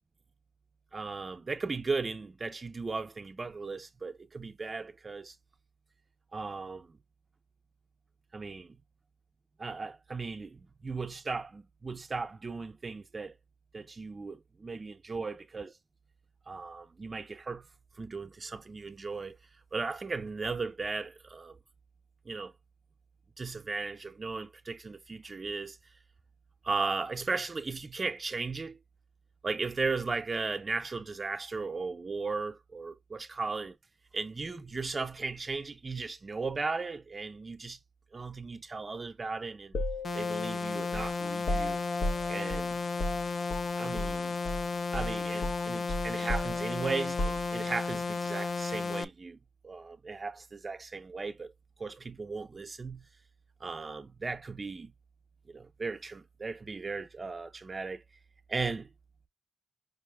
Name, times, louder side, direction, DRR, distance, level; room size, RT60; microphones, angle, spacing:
voice 1, 0.9-5.4 6.3-6.9 8.3-8.8 9.6-13.3 13.7-15.7 16.5-17.7 18.0-19.4 19.7-21.6 22.3-22.5 23.4-25.8 26.6-28.8 29.4-33.8 34.1-37.8 38.1-39.8 40.1-41.8 42.3-42.8 43.8-44.4 44.9-49.4 49.6-51.5 51.8-53.1 53.6-54.9 55.5-58.0 58.5-58.9, right 4 dB, 30° right, 0.5 m, -36 dB
sound 1, 39.7-44.2 44.4-44.7 44.9-47.9, left 1 dB, 80° left, 1.0 m, -36 dB
sound 2, 40.0-49.0, left 4 dB, 45° left, 0.3 m, -33 dB
5.3 x 2.0 x 3.3 m
wide cardioid pair, 120°, 0 cm